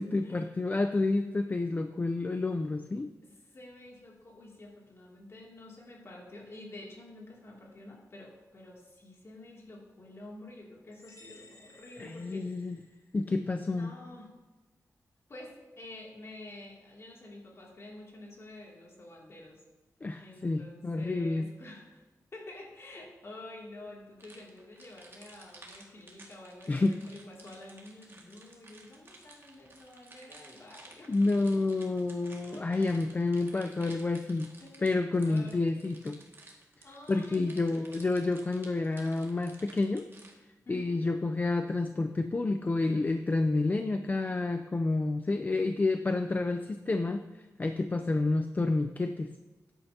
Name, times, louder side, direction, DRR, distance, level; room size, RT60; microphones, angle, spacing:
voice 1, 0.0-3.1 12.0-12.8 13.1-13.9 20.0-21.5 26.7-27.0 31.1-34.5 34.8-36.2 37.1-40.1 40.7-49.3, left 3 dB, 30° left, 7 dB, 0.5 m, -29 dB
voice 2, 3.5-12.8 13.6-14.3 15.3-19.6 20.2-22.0 22.3-31.1 31.4-31.7 32.4-32.8 34.6-34.8 35.2-35.8 36.8-38.0 40.6-41.0 48.1-48.3, left 2 dB, 45° left, -2 dB, 2.6 m, -49 dB
sound 1, 10.9-13.5, left 2 dB, 75° left, 3.6 m, -57 dB
sound 2, 24.2-40.3, right 2 dB, 40° right, 1.9 m, -54 dB
14.0 x 10.0 x 2.8 m, 1.2 s
wide cardioid pair, 125°, 6 cm